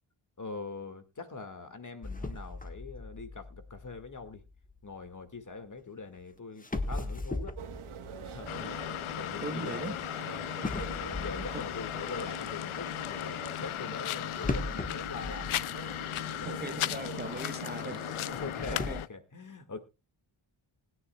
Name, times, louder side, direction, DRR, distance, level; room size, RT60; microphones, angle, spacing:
voice 1, 0.4-4.4 4.8-7.5 8.2-10.1 10.8-15.6 16.3-17.0 18.4-19.8, left 3 dB, 40° left, 9 dB, 1.9 m, -43 dB
sound 1, 2.0-5.2 6.1-6.2 6.6-10.0 10.6-12.5 14.4-16.2 16.5-16.6 17.2-17.3 18.3-19.0, left 2 dB, 15° left, 1.3 m, -38 dB
sound 2, 7.6-18.7, right 8 dB, 80° right, 1.3 m, -46 dB
sound 3, 8.5-19.1, left 13 dB, 80° left, 0.6 m, -36 dB
voice 2, 8.5-8.8 9.4-9.9 11.3-11.6 16.4-18.1 18.7-19.0, right 3 dB, 20° right, 9 dB, 1.0 m, -40 dB
20.5 x 9.8 x 2.3 m, 0.27 s
cardioid pair, 70°, 49 cm